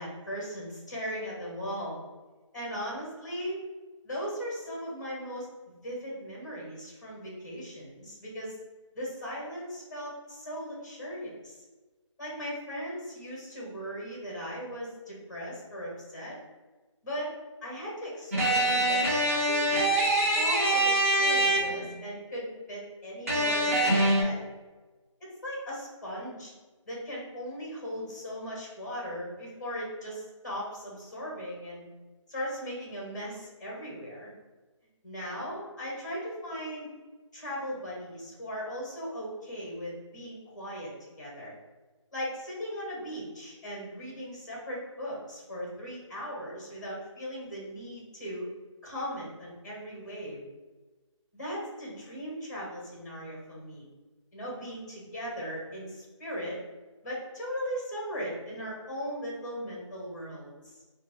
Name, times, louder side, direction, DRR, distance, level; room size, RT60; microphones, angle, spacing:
voice 1, 0.0-2.0 2.5-3.6 4.0-8.6 8.9-11.6 12.2-16.4 17.0-17.3 17.6-19.9 20.3-24.4 25.4-26.5 26.9-31.9 32.3-34.3 35.0-36.9 37.3-41.5 42.1-48.5 48.8-50.4 51.3-53.9 54.3-56.6 57.0-60.5, equal, 35° left, -4 dB, 1.0 m, -38 dB
sound 1, 18.3-22.0 23.3-24.2, right 1 dB, 30° right, 0.6 m, -24 dB
3.5 x 2.1 x 3.1 m, 1.2 s
figure-of-eight pair, 175°, 16 cm